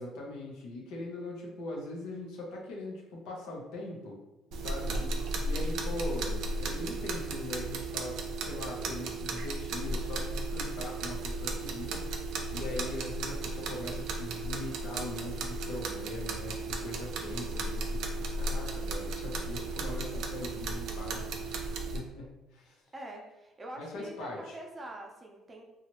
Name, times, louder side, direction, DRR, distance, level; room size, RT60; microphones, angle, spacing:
voice 1, 0.0-4.2 4.5-5.0 5.4-12.0 12.5-22.8 23.8-24.6, left 2 dB, 80° left, -2 dB, 0.8 m, -41 dB
sound 1, 4.5-22.0, right 2 dB, 75° right, 0.4 m, -35 dB
voice 2, 4.8-5.2 22.9-25.6, right 1 dB, 30° right, 1 dB, 0.6 m, -45 dB
2.8 x 2.3 x 2.9 m, 1.0 s
cardioid pair, 90°, 0 cm